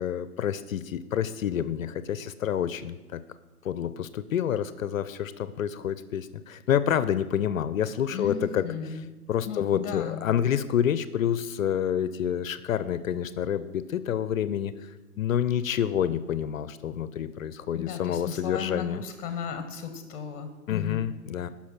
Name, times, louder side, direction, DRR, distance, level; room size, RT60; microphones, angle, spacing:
voice 1, 0.0-3.2 3.6-9.0 9.3-19.0 20.7-21.5, left 9 dB, 60° left, 14 dB, 0.6 m, -28 dB
voice 2, 8.1-9.0 9.5-10.2 17.7-21.1, left 7 dB, 35° left, 7 dB, 1.0 m, -35 dB
10.5 x 5.8 x 5.9 m, 1.2 s
hypercardioid pair, 145°, 45 cm